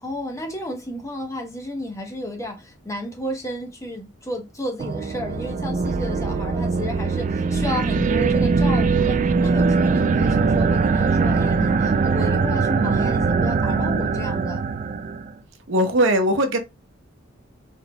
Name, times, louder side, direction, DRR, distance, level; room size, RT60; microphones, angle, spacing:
voice 1, 0.0-14.6, left 1 dB, 15° left, 0.9 m, -32 dB
sound 1, 4.8-15.3, right 4 dB, 40° right, 0.3 m, -21 dB
voice 2, 15.7-16.6, right 1 dB, 65° right, 0.8 m, -19 dB
4.4 x 3.5 x 2.2 m
head